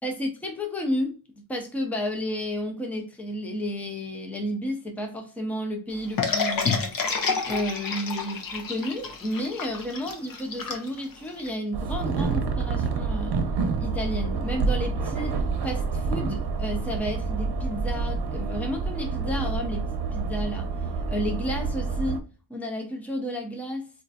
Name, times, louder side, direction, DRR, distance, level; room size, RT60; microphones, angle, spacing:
voice 1, 0.0-6.9 7.5-13.4 13.8-20.7 21.1-23.9, equal, 5° left, 0.5 m, -32 dB
sound 1, 6.2-11.5, left 5 dB, 60° left, 0.7 m, -29 dB
sound 2, 11.7-22.2, right 4 dB, 75° right, 0.7 m, -28 dB
4.2 x 2.5 x 2.4 m
wide cardioid pair, 180°, 40 cm